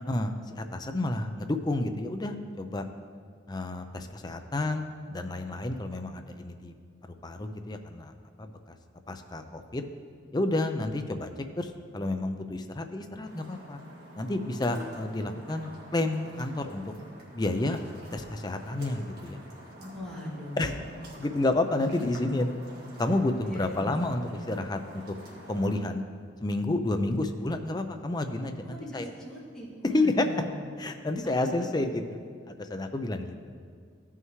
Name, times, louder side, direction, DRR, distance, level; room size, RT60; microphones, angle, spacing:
voice 1, 0.1-2.9 3.5-6.7 7.2-8.1 8.4-8.8 9.1-9.8 10.3-11.3 11.6-13.8 14.2-16.8 17.3-17.8 18.1-19.4 20.6-20.7 21.2-22.5 23.0-25.0 25.5-26.0 26.4-29.1 29.8-30.3 30.8-32.0 32.6-33.3, left 2 dB, 20° left, 7 dB, 0.5 m, -30 dB
sound 1, 13.2-25.8, equal, 60° right, 1.9 m, -48 dB
voice 2, 19.8-20.7 23.4-23.9 28.6-30.7 31.2-31.5, left 1 dB, 5° left, -9 dB, 2.3 m, -41 dB
15.5 x 5.6 x 3.2 m, 2.1 s
head